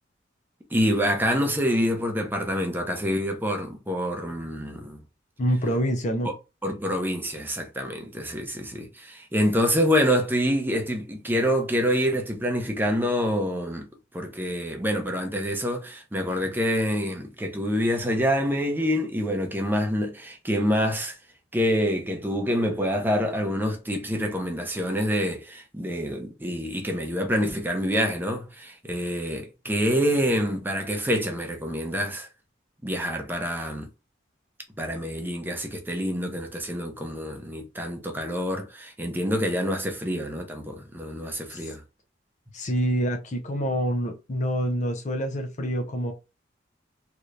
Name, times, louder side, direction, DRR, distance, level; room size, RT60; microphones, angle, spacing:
voice 1, 0.7-5.0 6.6-13.9 14.1-21.1 21.5-32.3 32.8-33.9 34.8-41.8, equal, 10° right, 0.7 m, -26 dB
voice 2, 5.4-6.3 41.5-41.7 42.5-46.1, equal, 40° left, 0.6 m, -26 dB
3.2 x 2.9 x 2.5 m
head